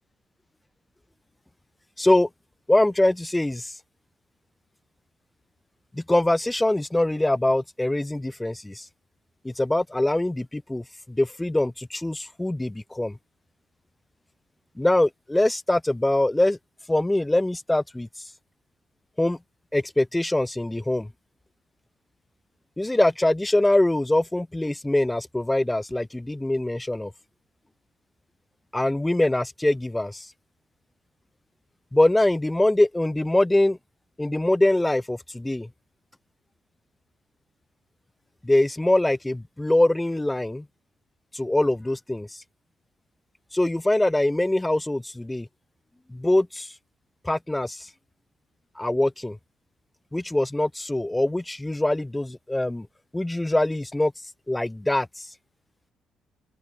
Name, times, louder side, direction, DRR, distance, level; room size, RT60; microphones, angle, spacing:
voice 1, 2.0-2.3 2.7-3.8 6.0-8.9 9.4-13.2 14.8-16.6 16.9-18.3 19.2-19.4 19.7-21.1 22.8-27.1 28.7-30.3 31.9-33.8 34.2-35.7 38.4-40.6 41.3-42.4 43.5-45.5 46.1-46.8 47.2-47.9 48.7-49.4 50.1-52.9 53.1-55.3, left 1 dB, 10° left, 6.5 m, -23 dB
open air
cardioid pair, 90°, 0 cm